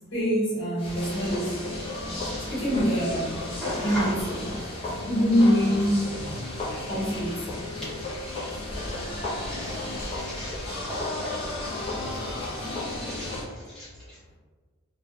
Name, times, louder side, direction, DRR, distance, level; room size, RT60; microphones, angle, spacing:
voice 1, 0.1-1.6 2.5-3.4 3.8-4.5 5.1-6.1 6.9-7.5 10.0-10.1, equal, 60° left, -8 dB, 1.2 m, -24 dB
sound 1, 0.8-13.5, left 1 dB, 25° left, 0.5 m, -33 dB
voice 2, 3.6-4.1 8.0-8.1 9.5-10.6 11.2-11.3 13.1-13.3 13.7-13.9, equal, ahead, -13 dB, 0.9 m, -35 dB
2.6 x 2.2 x 2.3 m, 1.5 s
head